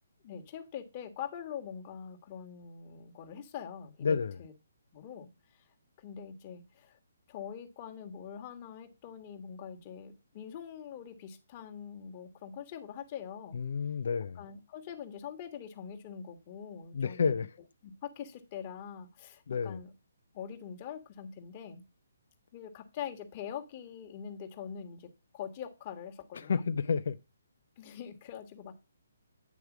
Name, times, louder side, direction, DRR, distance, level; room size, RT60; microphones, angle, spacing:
voice 1, 0.2-4.5 4.9-5.7 6.0-7.0 7.3-13.6 14.3-17.4 17.8-19.9 20.3-21.8 22.5-26.6 27.8-28.7, left 8 dB, 30° left, 1.4 m, -44 dB
voice 2, 4.0-4.4 13.5-14.4 16.9-17.5 19.5-19.8 26.3-27.2, left 5 dB, 60° left, 0.4 m, -30 dB
9.4 x 3.3 x 5.9 m
hypercardioid pair, 150°, 0 cm